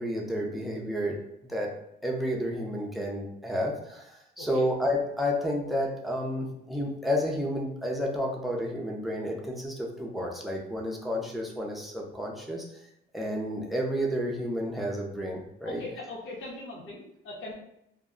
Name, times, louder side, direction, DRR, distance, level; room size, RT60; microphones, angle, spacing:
voice 1, 0.0-1.7 2.0-12.9 13.1-15.8, equal, ahead, -2 dB, 0.6 m, -31 dB
voice 2, 15.6-17.5, left 2 dB, 80° left, -4 dB, 0.8 m, -40 dB
2.2 x 2.0 x 3.6 m, 0.78 s
cardioid pair, 90°, 20 cm